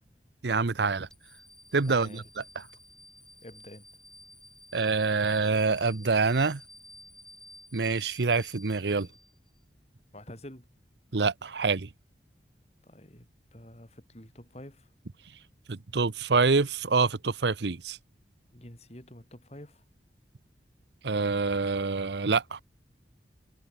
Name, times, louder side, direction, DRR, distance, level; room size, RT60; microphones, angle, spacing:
voice 1, 0.4-1.1 1.7-2.2 2.6-2.7 4.7-6.6 7.7-9.1 11.1-11.9 15.7-18.0 21.0-22.6, right 4 dB, 80° right, 0.8 m, -26 dB
sound 1, 1.1-9.6, left 1 dB, 5° left, 3.9 m, -53 dB
voice 2, 1.9-2.2 3.4-3.9 10.1-10.7 12.8-14.9 18.5-19.8, left 1 dB, 35° left, 4.1 m, -48 dB
head